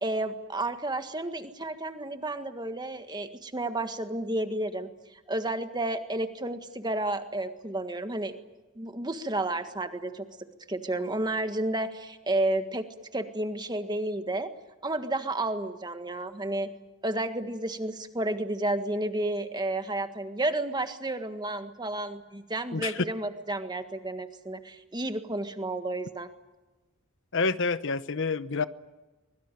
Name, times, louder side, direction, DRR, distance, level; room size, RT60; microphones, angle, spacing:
voice 1, 0.0-4.9 5.3-8.4 8.8-10.3 10.7-12.9 13.1-14.5 14.8-16.7 17.0-26.3, right 2 dB, 20° right, 1.7 m, -31 dB
voice 2, 27.3-28.6, left 4 dB, 60° left, 0.9 m, -28 dB
24.5 x 22.5 x 9.2 m
head